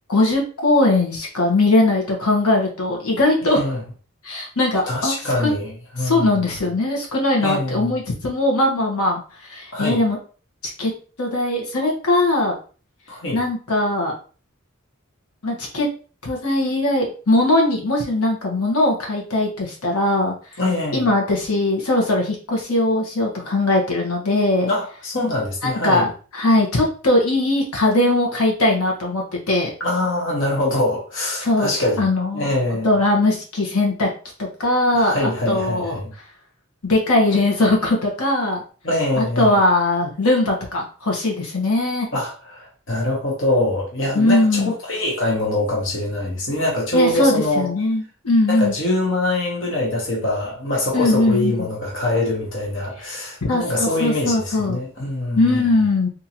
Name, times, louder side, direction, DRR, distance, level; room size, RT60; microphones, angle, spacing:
voice 1, 0.1-3.6 4.2-5.5 6.0-9.2 9.5-10.2 10.8-10.9 11.2-12.5 13.3-14.1 15.4-15.9 16.2-20.3 20.9-24.7 25.6-29.7 31.4-31.7 32.0-34.1 34.6-36.0 36.8-38.6 39.2-42.1 44.1-44.7 46.9-48.7 50.9-51.7 53.4-54.8 55.4-56.1, left 2 dB, 90° left, 1.2 m, -20 dB
voice 2, 3.5-3.8 4.9-5.7 6.0-6.4 7.4-7.9 9.7-10.0 13.1-13.4 20.6-21.1 24.7-26.1 29.8-32.0 32.3-32.9 34.9-36.1 38.8-39.6 42.1-47.7 48.5-55.8, left 1 dB, 55° left, 1.1 m, -23 dB
3.8 x 2.8 x 2.9 m
head